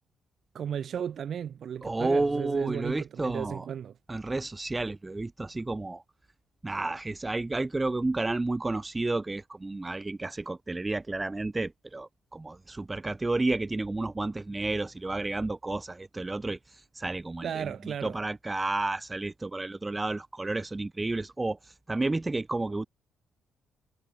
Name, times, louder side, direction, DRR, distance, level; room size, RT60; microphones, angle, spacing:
voice 1, 0.5-3.9 17.4-18.2, right 8 dB, 60° right, 1.5 m, -35 dB
voice 2, 1.8-3.6 4.1-6.0 6.6-16.6 17.0-21.6 21.9-22.9, right 2 dB, 20° right, 1.2 m, -31 dB
cardioid pair, 90°, 0 cm